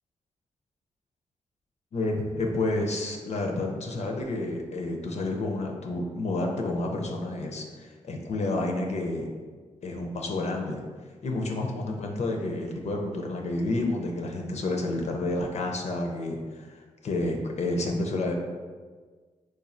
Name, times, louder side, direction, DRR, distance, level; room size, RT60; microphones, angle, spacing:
voice 1, 1.9-9.3 9.8-10.8 11.2-18.3, left 2 dB, 60° left, 2 dB, 0.4 m, -30 dB
3.1 x 2.2 x 2.5 m, 1.5 s
cardioid pair, 60°, 13 cm